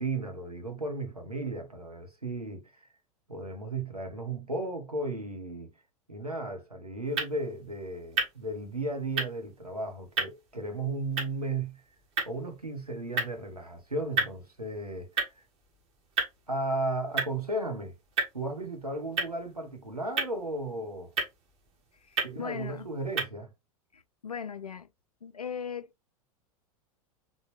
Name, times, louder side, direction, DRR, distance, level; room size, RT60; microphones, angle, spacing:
voice 1, 0.0-2.9 3.3-5.7 6.1-11.8 12.2-15.1 16.5-17.9 18.3-21.1 22.2-23.5, right 2 dB, 85° right, 1.1 m, -35 dB
sound 1, 7.0-23.2, right 4 dB, 35° right, 1.7 m, -36 dB
voice 2, 22.0-22.9 23.9-24.9 25.2-26.1, left 7 dB, 85° left, 0.4 m, -39 dB
4.0 x 3.6 x 3.2 m
figure-of-eight pair, 90°, 19 cm